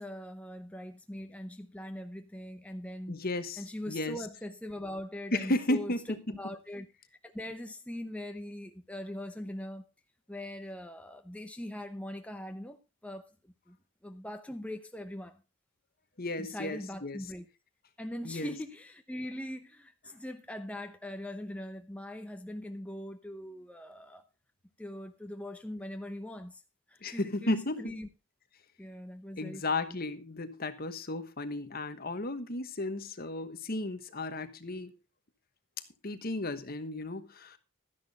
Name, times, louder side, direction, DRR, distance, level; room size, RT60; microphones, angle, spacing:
voice 1, 0.0-3.2 3.6-6.9 7.2-9.8 10.3-13.3 13.7-13.8 14.0-15.4 16.4-17.5 18.0-24.2 24.8-26.6 26.9-28.1 28.8-30.0, left 1 dB, 5° left, 0.8 m, -41 dB
voice 2, 3.1-4.2 5.3-6.2 16.2-17.2 18.2-18.5 27.0-27.9 29.4-34.9 36.0-37.6, left 2 dB, 45° left, 1.2 m, -34 dB
12.5 x 10.5 x 4.1 m
head